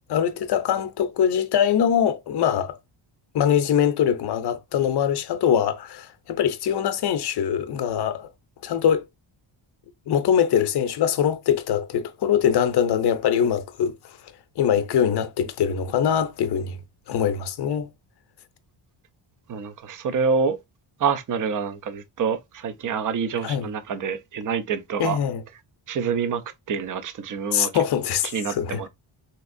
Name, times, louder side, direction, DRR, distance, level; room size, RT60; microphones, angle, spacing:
voice 1, 0.1-2.7 3.3-8.3 8.6-9.0 10.1-14.2 14.6-16.8 17.1-17.9 23.4-23.7 25.0-25.4 27.5-28.9, left 8 dB, 55° left, 0.6 m, -23 dB
voice 2, 19.5-20.6 21.0-25.2 25.9-26.4 26.7-27.8 28.2-28.9, right 6 dB, 40° right, 0.5 m, -27 dB
3.3 x 2.9 x 2.4 m
wide cardioid pair, 130°, 49 cm